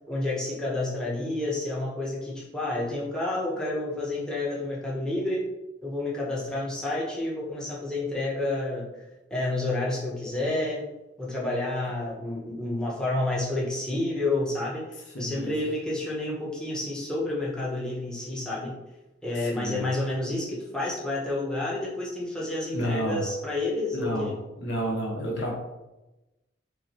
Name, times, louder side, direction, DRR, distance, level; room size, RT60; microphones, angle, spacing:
voice 1, 0.1-5.4 5.8-8.9 9.3-10.8 11.2-14.8 15.2-18.7 19.2-24.3, left 2 dB, 5° left, -6 dB, 0.8 m, -29 dB
voice 2, 15.1-15.5 19.4-19.9 22.7-23.3 23.9-24.3 24.6-25.5, equal, 70° left, -1 dB, 0.9 m, -30 dB
5.5 x 2.1 x 2.8 m, 1.0 s
head